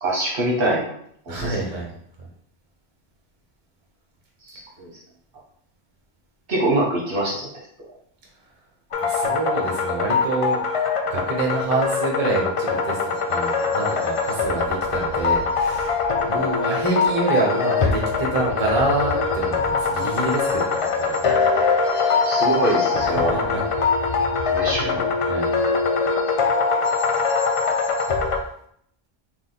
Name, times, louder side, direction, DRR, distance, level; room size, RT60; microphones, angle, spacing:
voice 1, 0.0-0.9 1.3-1.5 4.5-4.9 6.5-7.5 16.3-16.5 22.0-23.9 24.5-25.1, right 1 dB, 60° right, -3 dB, 1.1 m, -24 dB
voice 2, 1.3-1.9 2.2-2.3 9.0-10.6 11.1-16.0 16.2-21.2 23.0-23.6 25.2-25.9, right 3 dB, 35° right, -2 dB, 1.0 m, -27 dB
sound 1, 8.9-28.4, left 4 dB, 55° left, 0.3 m, -22 dB
3.7 x 2.6 x 3.9 m, 0.66 s
omnidirectional pair, 1.1 m